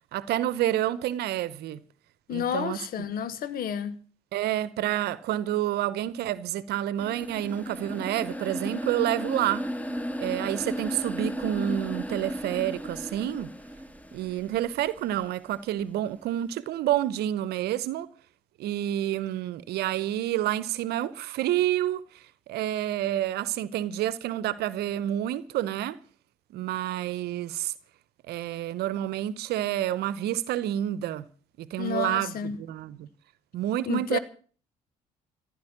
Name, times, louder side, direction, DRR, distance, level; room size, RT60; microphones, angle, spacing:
voice 1, 0.1-1.8 2.3-3.1 4.3-9.7 10.2-13.5 14.1-18.1 18.6-26.0 26.5-27.7 28.3-31.2 31.6-33.1 33.5-34.2, right 12 dB, 65° right, 0.9 m, -29 dB
voice 2, 2.3-4.0 31.8-32.6 33.9-34.2, left 8 dB, 55° left, 1.4 m, -30 dB
sound 1, 7.0-15.0, equal, 10° left, 2.0 m, -34 dB
15.0 x 11.0 x 7.3 m
hypercardioid pair, 55°, 18 cm